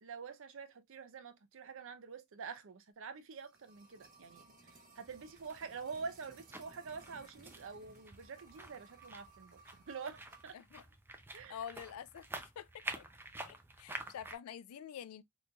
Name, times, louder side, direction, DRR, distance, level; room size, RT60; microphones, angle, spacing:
voice 1, 0.0-9.6 9.9-10.6 11.3-11.6, right 5 dB, 60° right, 0.5 m, -47 dB
sound 1, 3.1-10.6 10.8-10.9, right 3 dB, 40° right, 1.2 m, -61 dB
sound 2, 5.1-14.4, right 2 dB, 10° right, 0.4 m, -49 dB
voice 2, 10.5-10.8 11.5-13.1 13.5-15.2, left 8 dB, 75° left, 0.4 m, -47 dB
3.8 x 3.0 x 2.2 m
head